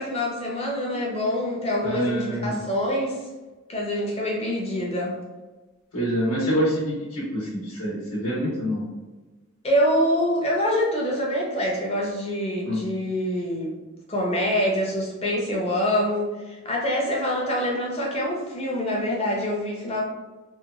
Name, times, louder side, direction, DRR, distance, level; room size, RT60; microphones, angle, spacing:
voice 1, 0.0-3.2 3.7-5.1 9.6-13.7 14.1-20.0, equal, 25° left, -2 dB, 0.5 m, -25 dB
voice 2, 1.8-2.6 5.9-8.8 12.6-12.8, equal, 85° left, -7 dB, 0.9 m, -26 dB
2.9 x 2.2 x 2.4 m, 1.2 s
head